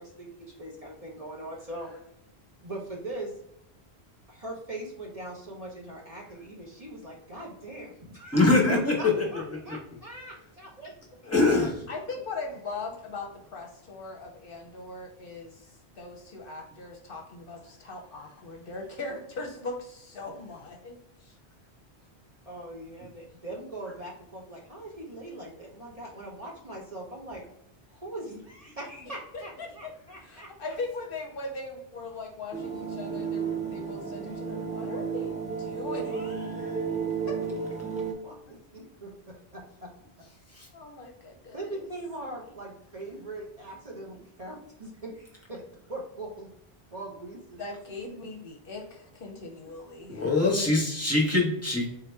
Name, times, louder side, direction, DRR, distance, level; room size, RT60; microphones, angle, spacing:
voice 1, 0.0-1.9 2.6-3.3 4.3-10.9 11.3-11.7 22.5-27.4 27.9-30.5 37.2-37.6 38.2-39.9 41.5-45.6 45.9-46.5 46.9-47.6, right 1 dB, 35° right, -3 dB, 0.9 m, -41 dB
voice 2, 8.3-9.3 11.3-11.7 40.6-40.7 50.1-51.9, left 3 dB, 15° left, -2 dB, 1.1 m, -23 dB
voice 3, 11.9-20.9 21.2-21.3 29.3-29.7 30.2-36.9 40.7-41.8 47.6-50.4, left 3 dB, 60° left, 2 dB, 0.8 m, -40 dB
sound 1, 32.5-38.1, right 6 dB, 10° right, 0.4 m, -32 dB
3.9 x 2.8 x 3.4 m, 0.78 s
omnidirectional pair, 1.1 m